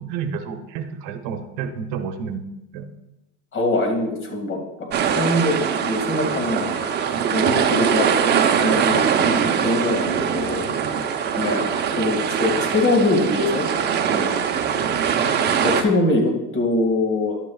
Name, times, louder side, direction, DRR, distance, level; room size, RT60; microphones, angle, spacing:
voice 1, 0.0-2.4 2.7-2.9, right 6 dB, 60° right, 7 dB, 1.1 m, -30 dB
voice 2, 3.5-5.6 5.8-6.9 7.3-8.1 8.5-10.7 11.4-11.6 11.9-13.7 14.1-14.6 15.6-17.4, left 2 dB, 35° left, 2 dB, 2.1 m, -23 dB
sound 1, 4.9-15.8, right 7 dB, 30° right, 0.8 m, -22 dB
11.0 x 9.8 x 2.4 m, 0.92 s
supercardioid pair, 130°, 34 cm